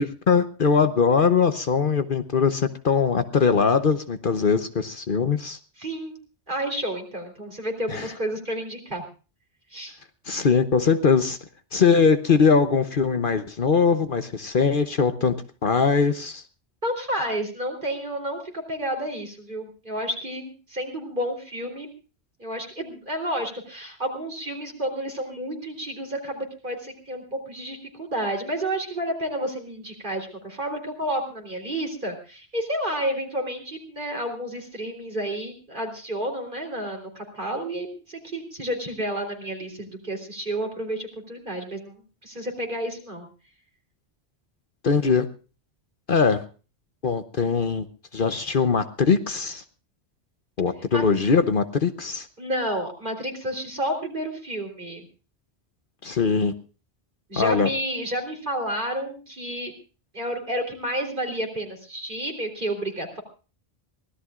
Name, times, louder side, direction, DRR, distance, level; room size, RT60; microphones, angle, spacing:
voice 1, 0.0-5.6 7.9-8.1 10.3-11.4 11.7-15.3 15.6-16.4 44.8-45.3 46.1-46.4 47.0-47.8 48.1-49.6 50.6-52.3 56.0-56.5 57.4-57.7, left 5 dB, 55° left, 10 dB, 1.0 m, -21 dB
voice 2, 5.8-6.2 6.5-9.0 9.7-9.9 16.8-21.9 22.4-43.3 50.9-51.0 52.4-55.1 57.3-59.7 60.1-63.2, right 1 dB, 45° right, 2 dB, 3.8 m, -30 dB
24.0 x 17.0 x 2.5 m, 0.35 s
omnidirectional pair, 1.1 m